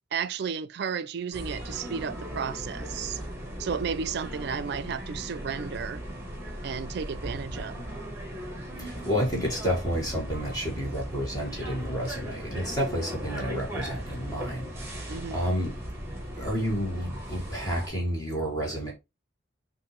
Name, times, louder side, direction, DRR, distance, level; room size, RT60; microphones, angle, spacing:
voice 1, 0.1-3.2 3.6-6.0 6.6-7.8 15.1-15.4, right 6 dB, 55° right, 0.4 m, -33 dB
sound 1, 1.3-17.9, equal, 10° right, 1.2 m, -38 dB
voice 2, 8.0-18.9, equal, 20° left, 1.8 m, -31 dB
5.9 x 2.7 x 3.2 m
head